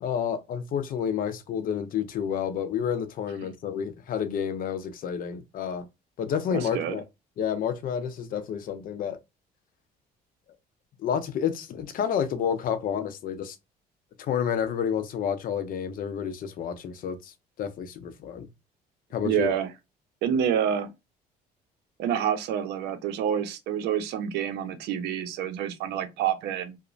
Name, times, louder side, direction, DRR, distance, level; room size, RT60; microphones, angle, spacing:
voice 1, 0.0-5.9 6.2-7.0 7.4-9.2 11.0-13.6 14.2-17.3 17.6-18.5 19.1-19.6, left 8 dB, 55° left, 0.6 m, -30 dB
voice 2, 6.5-7.0 19.2-19.7 20.2-20.9 22.0-26.8, right 9 dB, 85° right, 0.6 m, -28 dB
2.9 x 2.1 x 2.5 m
cardioid pair, 110°, 17 cm